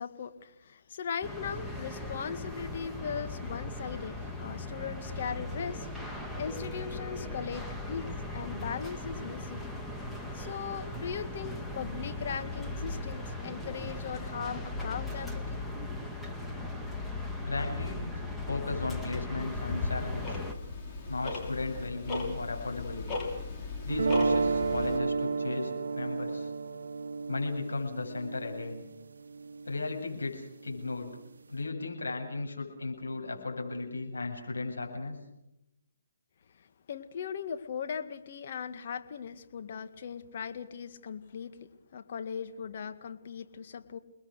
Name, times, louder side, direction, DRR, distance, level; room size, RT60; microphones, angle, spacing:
voice 1, 0.0-9.7 10.3-15.7 36.9-44.0, left 7 dB, 50° left, 8 dB, 2.0 m, -39 dB
sound 1, 1.2-20.5, left 2 dB, 5° left, 2.1 m, -38 dB
voice 2, 17.4-18.2 18.5-20.4 21.1-23.2 23.8-26.5 27.3-28.8 29.7-31.2 31.5-35.2, left 3 dB, 85° left, 2 dB, 7.6 m, -36 dB
Tick-tock, 19.4-25.0, left 3 dB, 25° left, 6.3 m, -37 dB
sound 2, 23.9-30.0, right 4 dB, 75° right, 1.0 m, -32 dB
29.0 x 21.0 x 6.6 m, 0.86 s
hypercardioid pair, 145°, 0 cm